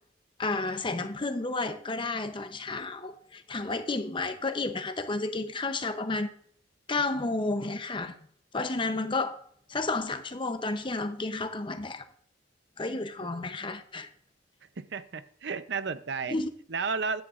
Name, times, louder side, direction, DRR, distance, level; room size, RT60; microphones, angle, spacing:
voice 1, 0.4-6.3 6.9-8.1 8.5-9.4 9.7-12.0 12.8-14.1 16.3-16.5, left 3 dB, 25° left, 0.7 m, -31 dB
voice 2, 14.8-16.3 16.7-17.2, right 5 dB, 60° right, 0.6 m, -32 dB
14.5 x 10.5 x 2.5 m
head